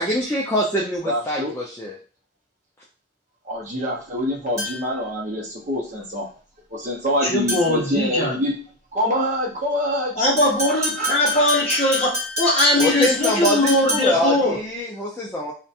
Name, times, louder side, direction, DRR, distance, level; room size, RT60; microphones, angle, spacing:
voice 1, 0.0-2.0 12.8-15.5, equal, 10° left, -5 dB, 0.3 m, -24 dB
voice 2, 1.0-1.5 3.5-6.3 6.7-8.5 8.9-10.1 10.6-11.4, equal, 35° right, -2 dB, 0.7 m, -25 dB
sound 1, 4.6-5.0 7.5-7.9 10.4-14.3, equal, 15° right, 1.0 m, -28 dB
voice 3, 7.2-8.3 10.1-14.6, left 1 dB, 30° left, -4 dB, 0.8 m, -20 dB
2.4 x 2.2 x 2.7 m, 0.38 s
head